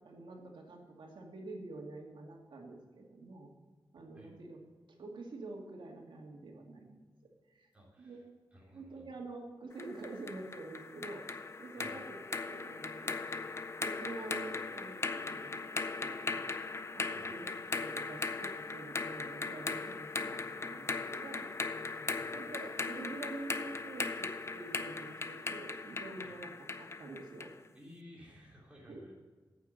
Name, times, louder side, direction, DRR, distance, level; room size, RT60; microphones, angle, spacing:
voice 1, 0.0-3.5 3.9-4.6 5.0-7.0 7.5-7.7 8.0-8.3 8.7-11.2 11.6-13.2 13.8-16.4 16.9-17.5 17.8-21.5 22.3-26.5 26.8-27.7 28.9-29.0, right 2 dB, 80° right, 1 dB, 2.3 m, -47 dB
voice 2, 7.7-8.2 8.5-9.1 11.7-12.0 17.1-17.3 21.9-22.2 26.2-26.3 27.7-29.2, left 1 dB, 15° right, -4 dB, 3.3 m, -56 dB
sound 1, 9.8-27.6, left 4 dB, 35° left, 0.5 m, -39 dB
9.3 x 8.4 x 6.7 m, 1.3 s
wide cardioid pair, 160°, 8 cm